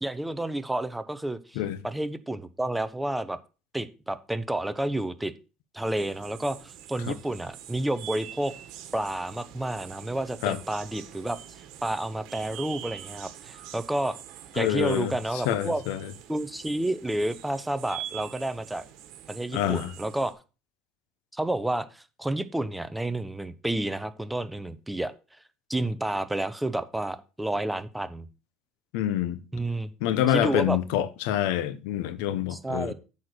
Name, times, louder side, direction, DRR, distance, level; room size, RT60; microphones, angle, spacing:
voice 1, 0.0-3.4 3.7-5.3 5.7-8.5 8.9-14.2 14.5-15.8 16.3-18.8 19.3-20.3 21.3-25.1 25.7-28.3 29.5-29.9 30.3-30.8 32.5-32.9, right 1 dB, 5° right, 0.7 m, -30 dB
sound 1, 5.9-20.3, right 11 dB, 65° right, 1.6 m, -45 dB
voice 2, 14.6-15.1 15.4-16.1 19.5-19.9 28.9-29.4 30.0-32.9, left 11 dB, 80° left, 0.9 m, -26 dB
8.3 x 4.4 x 6.6 m
cardioid pair, 130°, 0 cm